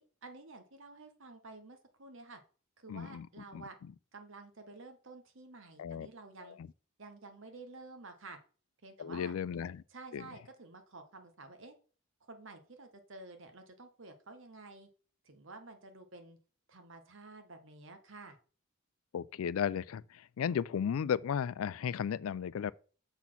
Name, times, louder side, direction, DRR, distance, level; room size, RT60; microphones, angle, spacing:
voice 1, 0.0-2.4 2.8-3.8 4.1-6.6 7.0-8.4 8.8-9.3 9.9-11.7 12.3-14.9 15.2-16.4 16.7-18.4, right 3 dB, 55° right, 1.1 m, -51 dB
voice 2, 2.9-3.3 3.5-3.6 5.8-6.1 9.0-9.8 10.1-10.2 19.1-22.7, left 8 dB, 70° left, 0.3 m, -34 dB
6.9 x 4.2 x 5.9 m
head